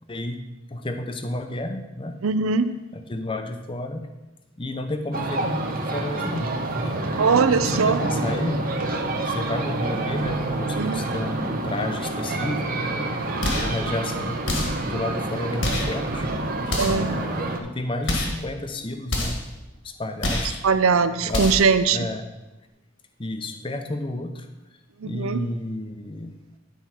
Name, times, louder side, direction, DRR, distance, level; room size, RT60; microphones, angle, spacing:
voice 1, 0.1-0.4 0.7-2.2 2.9-4.1 4.6-7.3 7.6-8.6 9.3-13.1 13.5-14.5 14.8-16.3 16.8-19.4 19.8-20.6 21.2-21.5 21.9-22.3 23.2-24.5 25.0-26.4, left 1 dB, 25° left, 7 dB, 0.6 m, -31 dB
voice 2, 2.2-2.7 7.2-8.0 10.8-11.0 16.8-17.2 20.6-22.0 25.0-25.4, right 5 dB, 85° right, 12 dB, 0.5 m, -20 dB
sound 1, 5.1-17.6, right 2 dB, 45° right, 0.8 m, -28 dB
sound 2, 13.4-13.8 14.5-14.9 15.6-16.0 16.7-17.1 18.0-18.4 19.1-19.5 20.2-20.6 21.3-21.7, left 1 dB, 60° left, 1.5 m, -27 dB
9.7 x 4.6 x 5.8 m, 1.1 s
head